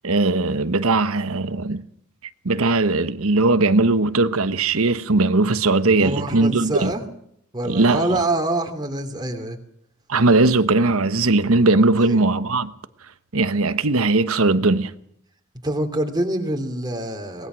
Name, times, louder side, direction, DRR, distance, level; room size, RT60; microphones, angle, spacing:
voice 1, 0.0-1.8 2.4-6.9 7.6-8.2 10.1-12.7 13.3-14.9, right 3 dB, 75° right, 1.1 m, -19 dB
voice 2, 6.0-7.0 7.5-9.6 15.6-17.5, right 1 dB, 20° right, 2.7 m, -25 dB
23.0 x 20.0 x 6.2 m
head